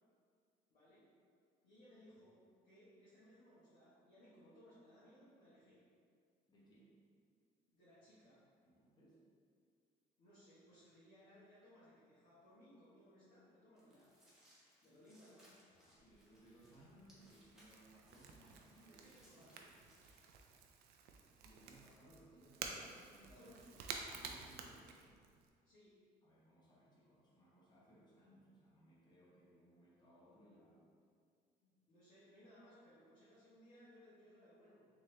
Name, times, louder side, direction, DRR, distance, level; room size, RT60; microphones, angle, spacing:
voice 1, 0.7-1.0 1.6-2.4 2.6-5.8 7.7-8.4 10.2-14.1 14.8-15.6 18.8-19.7 23.3-24.1 25.6-26.0 31.6-34.8, equal, 55° left, -11 dB, 1.2 m, -64 dB
voice 2, 6.5-6.9 8.6-9.2 14.8-15.0 15.8-19.0 19.4-19.5 21.4-23.8 24.2-25.1 26.2-30.9, right 1 dB, 25° left, -7 dB, 1.0 m, -65 dB
sound 1, 13.8-20.2, equal, 5° right, 1.0 m, -70 dB
Crackle / Crack, 15.9-25.5, right 5 dB, 75° right, 0.4 m, -52 dB
3.6 x 2.9 x 3.2 m, 2.2 s
cardioid pair, 110°, 17 cm